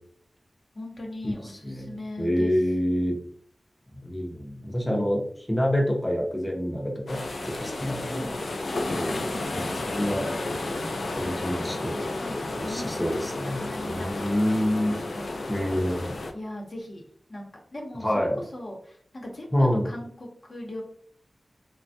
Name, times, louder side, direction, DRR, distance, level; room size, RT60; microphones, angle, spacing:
voice 1, 0.7-2.5 4.8-5.2 7.1-7.2 7.6-9.7 12.1-12.8 13.4-14.6 15.1-15.4 16.3-17.0 17.3-20.8, left 1 dB, 60° left, 0 dB, 0.8 m, -39 dB
voice 2, 2.2-3.2 4.0-5.2 5.5-7.2 7.6-8.3 9.0-9.2 9.5-10.3 11.1-11.9 12.6-15.0 15.5-16.1 18.0-18.4 19.5-19.9, equal, 10° left, 0 dB, 0.6 m, -27 dB
sound 1, 7.1-16.3, left 2 dB, 85° left, 0.4 m, -32 dB
3.2 x 2.1 x 2.6 m, 0.62 s
wide cardioid pair, 60°, 0 cm